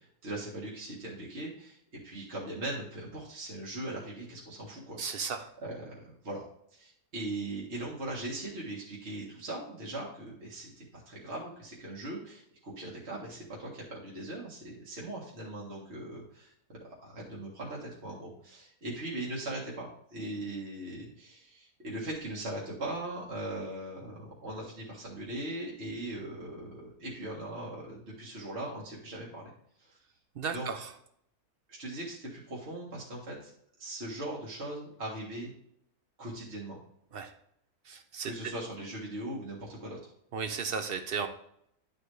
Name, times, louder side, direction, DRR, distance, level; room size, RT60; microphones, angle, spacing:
voice 1, 0.0-1.8 2.0-5.3 5.6-6.4 6.7-12.4 12.8-19.9 20.1-29.5 30.5-30.7 31.7-33.5 33.8-35.5 36.2-36.8 38.2-40.0, right 1 dB, 45° right, -5 dB, 1.9 m, -40 dB
voice 2, 5.0-5.5 30.3-30.9 37.1-37.3 37.8-38.5 40.3-41.3, right 6 dB, 60° right, 9 dB, 0.6 m, -35 dB
11.0 x 4.5 x 3.2 m, 0.70 s
omnidirectional pair, 1.7 m